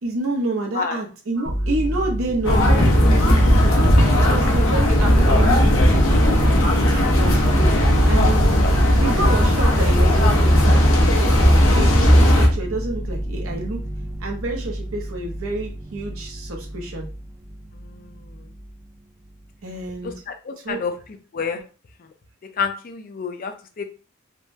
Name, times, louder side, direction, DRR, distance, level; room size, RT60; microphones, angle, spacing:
voice 1, 0.0-3.4 4.1-6.1 6.8-8.4 9.0-11.4 11.7-13.8 14.2-17.1 19.6-20.2 20.6-20.8, right 2 dB, 80° right, 1 dB, 0.8 m, -29 dB
sound 1, 1.4-18.9 19.2-20.0, right 1 dB, 15° right, 0.5 m, -29 dB
sound 2, 2.4-12.5, equal, 70° left, 0.8 m, -16 dB
voice 2, 20.0-20.9 21.3-21.6 22.6-23.8, left 5 dB, 45° left, 6 dB, 0.4 m, -28 dB
3.5 x 2.1 x 2.7 m, 0.34 s
head